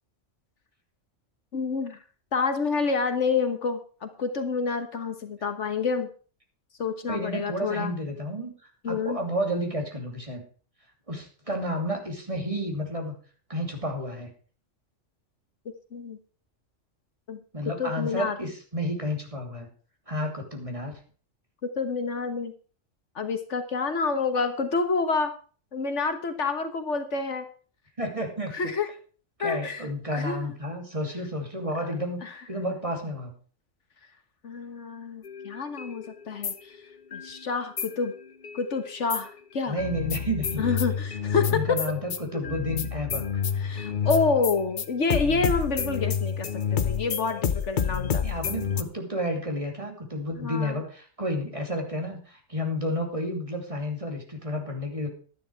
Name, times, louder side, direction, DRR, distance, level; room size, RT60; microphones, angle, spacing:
voice 1, 1.5-2.0 2.3-6.1 6.8-7.9 8.8-9.2 15.9-16.2 17.3-17.4 17.8-18.3 21.6-22.5 23.1-25.3 25.7-27.5 28.5-28.9 29.4-29.8 30.1-30.5 32.2-32.3 34.4-36.8 37.1-38.1 38.5-39.8 40.6-41.8 42.3-42.5 43.6-48.2 50.4-50.8, left 4 dB, 65° left, 8 dB, 1.6 m, -28 dB
voice 2, 7.1-8.5 8.9-10.4 11.1-13.1 13.5-14.3 17.5-19.7 20.1-20.9 28.0-28.5 29.4-32.2 32.5-33.3 39.7-40.6 41.5-43.4 48.2-55.1, equal, 25° right, 2 dB, 2.9 m, -31 dB
sound 1, 35.2-37.3 37.8-39.4 39.8-48.8, left 7 dB, 45° left, 0.9 m, -29 dB
12.0 x 10.5 x 4.6 m, 0.40 s
omnidirectional pair, 1.3 m